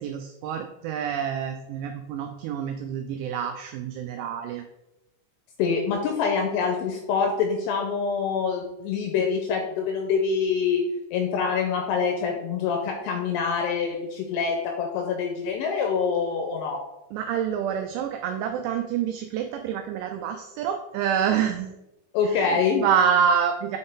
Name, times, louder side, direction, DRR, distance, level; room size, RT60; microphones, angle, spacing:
voice 1, 0.0-4.6 17.1-21.7 22.2-23.8, right 8 dB, 90° right, 5 dB, 2.4 m, -27 dB
voice 2, 5.6-10.8 11.1-16.8 22.1-22.9, left 6 dB, 85° left, 2 dB, 2.5 m, -25 dB
7.7 x 4.0 x 3.6 m, 0.93 s
omnidirectional pair, 5.5 m